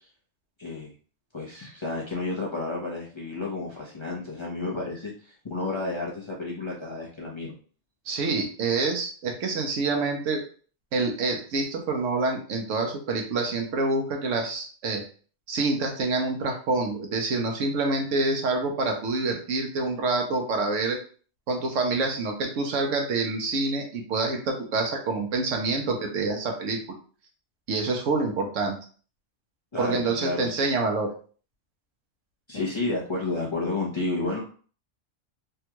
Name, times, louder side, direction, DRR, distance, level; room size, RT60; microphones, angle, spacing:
voice 1, 0.6-0.9 1.3-7.5 29.7-30.6 32.5-34.4, left 2 dB, 30° left, -5 dB, 0.6 m, -31 dB
voice 2, 8.1-10.4 10.9-15.0 15.5-21.0 21.5-26.8 27.7-28.7 29.8-31.1, right 3 dB, 80° right, 2 dB, 1.1 m, -27 dB
3.5 x 2.3 x 2.8 m, 0.41 s
omnidirectional pair, 1.3 m